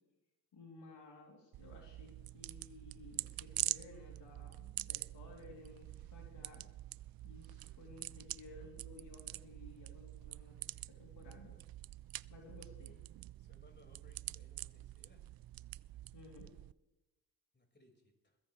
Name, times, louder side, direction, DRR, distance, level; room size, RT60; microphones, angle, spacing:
voice 1, 0.5-6.6 7.2-11.6 12.3-13.0 16.1-16.5, left 3 dB, 70° left, -1 dB, 3.5 m, -56 dB
sound 1, 1.5-16.7, right 14 dB, 55° right, 0.5 m, -46 dB
sound 2, 3.3-11.8, left 1 dB, 35° right, 3.2 m, -76 dB
voice 2, 13.4-15.3 17.5-18.4, left 2 dB, 25° left, 2 dB, 5.5 m, -66 dB
21.5 x 15.5 x 3.4 m, 0.99 s
supercardioid pair, 50°, 43 cm